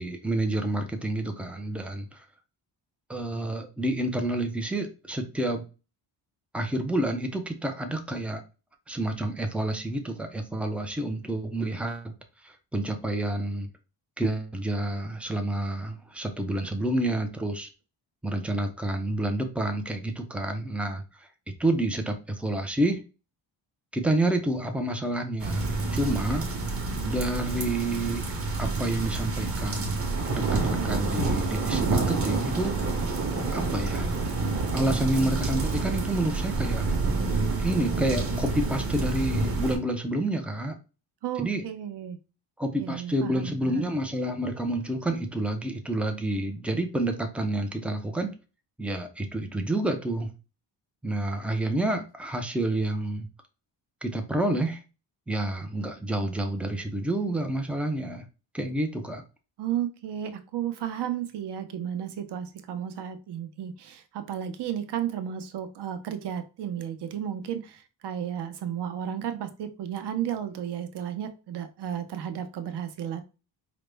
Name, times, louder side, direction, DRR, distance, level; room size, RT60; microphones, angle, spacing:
voice 1, 0.0-2.3 3.1-5.6 6.5-8.4 8.9-12.1 12.4-13.7 14.2-17.7 18.2-21.3 21.6-23.0 23.9-26.5 27.0-28.2 28.6-30.0 30.3-32.8 33.5-34.1 34.7-36.9 37.6-40.8 41.4-41.6 42.6-48.3 48.8-50.3 51.0-53.3 54.0-54.8 55.3-58.2 58.5-59.2, right 1 dB, 5° right, 5 dB, 0.3 m, -29 dB
sound 1, 25.4-39.8, right 3 dB, 30° right, 0.8 m, -28 dB
voice 2, 41.2-42.2 42.8-43.9 59.6-73.2, right 9 dB, 60° right, 8 dB, 0.7 m, -33 dB
4.9 x 2.0 x 3.3 m, 0.31 s
wide cardioid pair, 165°, 48 cm